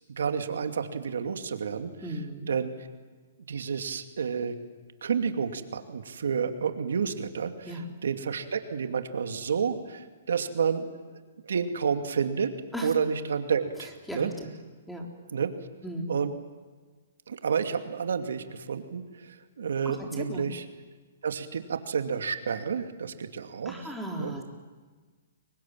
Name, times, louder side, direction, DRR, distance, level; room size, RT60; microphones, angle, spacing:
voice 1, 0.2-1.9 2.5-2.7 3.5-4.6 5.0-11.2 11.5-12.5 12.8-14.3 15.3-15.5 16.1-16.3 17.3-20.6 21.2-23.7 24.2-24.3, right 6 dB, 85° right, 7 dB, 2.6 m, -30 dB
voice 2, 2.0-2.5 7.7-7.9 12.7-12.9 14.1-14.5 14.9-15.1 15.8-16.1 19.8-20.4 23.7-24.4, equal, ahead, 1 dB, 3.8 m, -36 dB
30.0 x 24.0 x 7.6 m, 1.4 s
hypercardioid pair, 155°, 0 cm